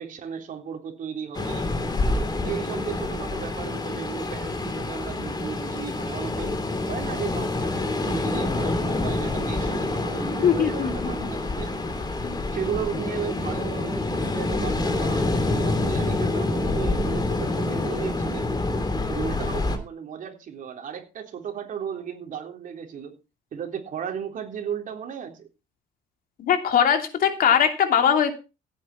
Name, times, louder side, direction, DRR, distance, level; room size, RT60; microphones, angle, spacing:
voice 1, 0.0-1.7 2.4-6.5 6.9-11.7 12.5-18.5 19.1-23.2 23.5-25.5, right 8 dB, 50° right, 4 dB, 3.7 m, -35 dB
Ocean, 1.3-19.8, left 2 dB, 25° left, 2.8 m, -27 dB
voice 2, 10.4-10.9 12.2-12.4 26.4-28.3, left 8 dB, 60° left, 6 dB, 2.9 m, -20 dB
16.5 x 8.9 x 4.4 m, 0.30 s
cardioid pair, 110°, 17 cm